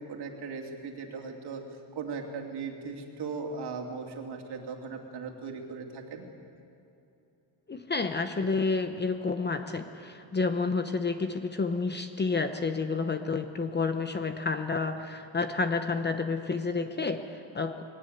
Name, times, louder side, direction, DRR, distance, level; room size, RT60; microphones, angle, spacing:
voice 1, 0.0-1.6 1.9-6.3, right 4 dB, 55° right, 2 dB, 2.9 m, -38 dB
voice 2, 7.7-17.8, left 4 dB, 20° left, 8 dB, 0.9 m, -30 dB
21.0 x 18.0 x 8.1 m, 2.7 s
cardioid pair, 130°, 48 cm